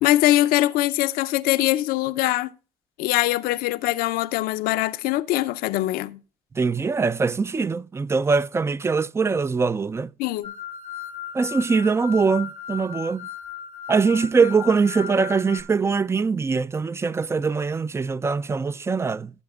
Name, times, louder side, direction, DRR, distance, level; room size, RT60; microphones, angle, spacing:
voice 1, 0.0-2.5 3.0-6.2 10.2-10.5, left 16 dB, 80° left, 0.6 m, -22 dB
voice 2, 6.6-10.1 11.3-13.3 13.9-19.3, right 4 dB, 15° right, 0.4 m, -22 dB
sound 1, 10.4-15.6, left 8 dB, 50° right, 2.5 m, -36 dB
17.0 x 8.0 x 2.4 m
cardioid pair, 90°, 15 cm